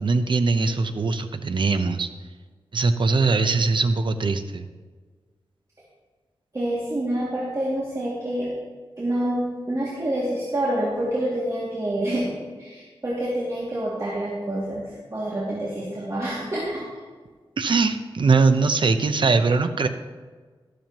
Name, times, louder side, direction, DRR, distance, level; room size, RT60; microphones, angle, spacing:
voice 1, 0.0-2.1 2.7-4.6 17.6-19.9, right 4 dB, 60° right, 9 dB, 0.7 m, -21 dB
voice 2, 6.5-8.5 9.0-12.3 12.6-16.8, right 1 dB, 35° right, -7 dB, 2.4 m, -27 dB
12.5 x 12.0 x 3.0 m, 1.5 s
wide cardioid pair, 120°, 9 cm